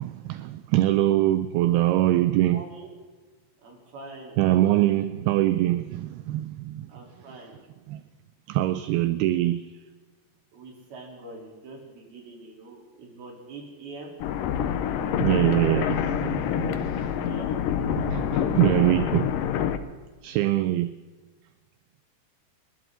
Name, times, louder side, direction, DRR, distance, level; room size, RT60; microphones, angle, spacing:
voice 1, 0.0-2.6 4.4-6.9 7.9-8.0 8.5-9.6 15.2-17.4 18.0-19.4 20.2-20.9, right 15 dB, 85° right, 2.3 m, -24 dB
voice 2, 2.5-2.9 3.6-5.0 6.9-7.6 10.5-14.1 17.3-17.6, right 2 dB, 60° right, 5.6 m, -44 dB
sound 1, 14.2-19.8, left 9 dB, 80° left, 2.0 m, -26 dB
30.0 x 12.5 x 3.9 m
omnidirectional pair, 5.1 m